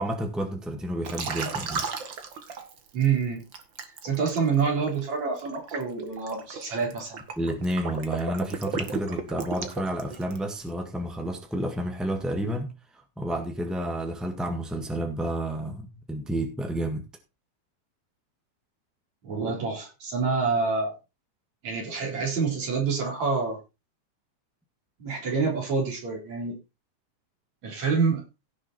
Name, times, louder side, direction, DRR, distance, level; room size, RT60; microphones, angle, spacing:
voice 1, 0.0-1.9 7.4-12.7 13.2-17.1, right 1 dB, ahead, 0.6 m, -30 dB
Liquid, 1.0-3.1 3.5-10.5, right 5 dB, 45° right, 2.1 m, -35 dB
voice 2, 2.9-3.4 4.0-7.2 19.2-20.9 21.6-23.6 25.0-26.6 27.6-28.2, right 5 dB, 60° right, 5.5 m, -27 dB
16.5 x 6.5 x 4.3 m
omnidirectional pair, 3.5 m